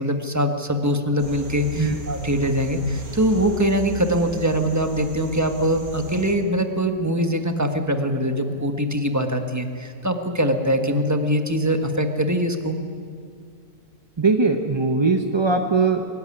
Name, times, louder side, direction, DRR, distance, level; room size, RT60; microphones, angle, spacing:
voice 1, 0.0-12.8, equal, 10° right, 6 dB, 1.2 m, -22 dB
sound 1, 1.2-6.3, left 2 dB, 80° right, 3.5 m, -36 dB
voice 2, 14.2-16.1, right 4 dB, 30° right, 5 dB, 0.5 m, -20 dB
23.0 x 13.5 x 9.9 m, 2.2 s
omnidirectional pair, 1.9 m